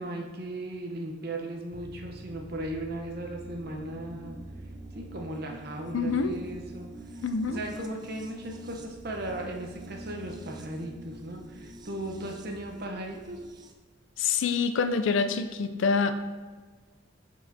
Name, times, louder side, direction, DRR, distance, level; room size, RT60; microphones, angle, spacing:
voice 1, 0.0-4.4 4.9-7.2 7.5-13.6, right 1 dB, 50° right, 1 dB, 0.7 m, -37 dB
sound 1, 1.7-13.7, right 1 dB, 20° right, 0.3 m, -45 dB
voice 2, 5.9-6.3 7.2-7.6 14.2-16.1, left 5 dB, 70° left, 9 dB, 0.4 m, -26 dB
7.8 x 4.8 x 2.7 m, 1.4 s
head